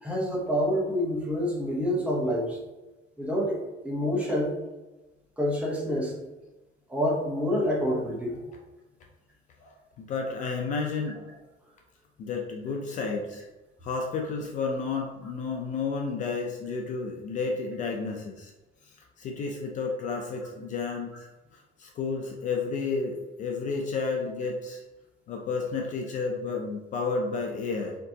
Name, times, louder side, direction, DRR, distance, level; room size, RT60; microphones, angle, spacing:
voice 1, 0.0-2.6 3.2-3.6 3.8-4.5 5.4-6.1 6.9-8.4, equal, 5° right, -3 dB, 0.8 m, -27 dB
voice 2, 9.6-11.4 12.2-13.4 13.8-18.5 19.2-21.1 21.8-24.8 25.3-28.0, left 4 dB, 40° left, 1 dB, 0.5 m, -31 dB
4.4 x 3.7 x 2.8 m, 1.1 s
cardioid pair, 175°, 20 cm